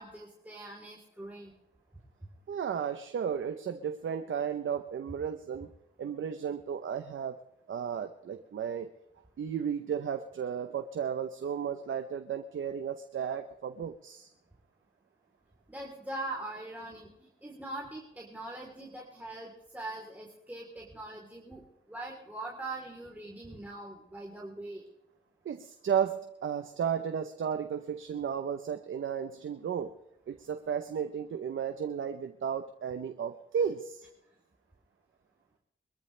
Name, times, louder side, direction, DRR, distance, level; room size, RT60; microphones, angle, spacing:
voice 1, 0.0-1.6 15.7-24.8, right 2 dB, 10° right, -3 dB, 3.5 m, -42 dB
voice 2, 2.5-5.7 6.0-7.4 7.7-8.9 9.4-14.3 25.4-29.9 30.3-34.1, right 7 dB, 85° right, 8 dB, 0.8 m, -34 dB
22.5 x 13.5 x 3.3 m, 0.79 s
cardioid pair, 55°, 20 cm